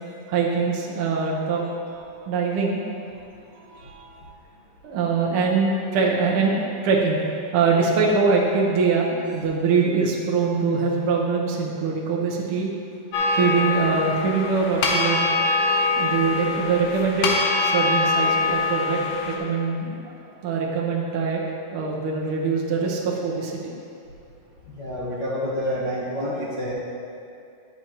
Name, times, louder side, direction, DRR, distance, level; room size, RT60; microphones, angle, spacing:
voice 1, 0.3-2.8 3.5-4.2 4.8-7.2 7.5-12.7 13.3-15.3 15.9-19.0 19.3-20.1 20.4-21.4 21.7-23.7, right 4 dB, 75° right, -2 dB, 1.2 m, -23 dB
sound 1, 13.1-19.4, left 3 dB, 70° left, 1.8 m, -23 dB
voice 2, 24.7-26.7, equal, 85° left, -9 dB, 0.9 m, -28 dB
10.5 x 7.9 x 3.0 m, 2.6 s
omnidirectional pair, 3.8 m